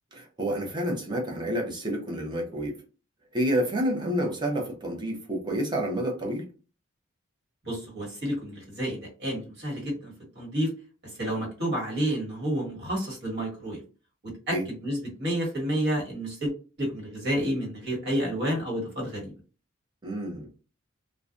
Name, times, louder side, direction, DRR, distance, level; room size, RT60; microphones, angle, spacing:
voice 1, 0.1-2.8 3.3-6.5 14.5-14.6 20.0-20.5, right 1 dB, 20° right, 0 dB, 0.7 m, -29 dB
voice 2, 7.6-10.7 11.0-13.8 14.2-16.5 16.8-19.3, equal, 60° right, -2 dB, 1.4 m, -30 dB
2.4 x 2.1 x 2.5 m, 0.34 s
head